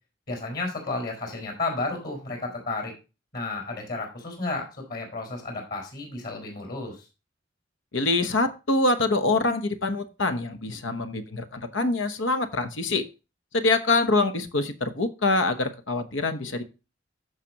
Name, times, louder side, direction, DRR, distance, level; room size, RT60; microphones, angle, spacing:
voice 1, 0.3-2.9 3.3-7.0, left 3 dB, 55° left, 2 dB, 4.7 m, -32 dB
voice 2, 7.9-13.1 13.5-16.6, left 2 dB, 90° left, 9 dB, 1.0 m, -25 dB
14.5 x 5.0 x 2.9 m, 0.30 s
head